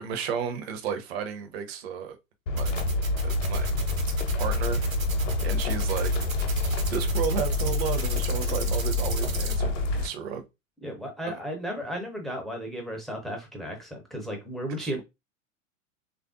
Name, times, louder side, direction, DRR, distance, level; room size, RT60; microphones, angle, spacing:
voice 1, 0.0-2.2 2.5-2.7 3.2-3.7 4.4-4.8 5.4-6.1 6.4-6.5 6.9-10.4 11.3-11.4 14.8-15.0, right 7 dB, 50° right, 0.7 m, -33 dB
sound 1, 2.5-10.1, left 2 dB, 65° left, 0.7 m, -27 dB
sound 2, 2.6-9.5, right 5 dB, 80° right, 1.0 m, -37 dB
voice 2, 10.8-15.0, equal, ahead, 0.4 m, -34 dB
3.3 x 2.4 x 2.4 m
figure-of-eight pair, 90°, 40 cm